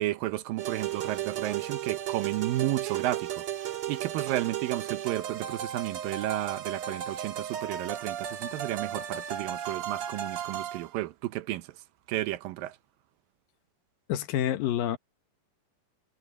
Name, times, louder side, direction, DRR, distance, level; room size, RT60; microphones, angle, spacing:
voice 1, 0.0-3.4 3.9-11.7 12.1-12.8, right 15 dB, 85° right, 2.6 m, -32 dB
sound 1, 0.6-10.9, right 11 dB, 60° right, 2.5 m, -35 dB
voice 2, 14.1-15.0, left 11 dB, 80° left, 2.9 m, -28 dB
omnidirectional pair, 4.0 m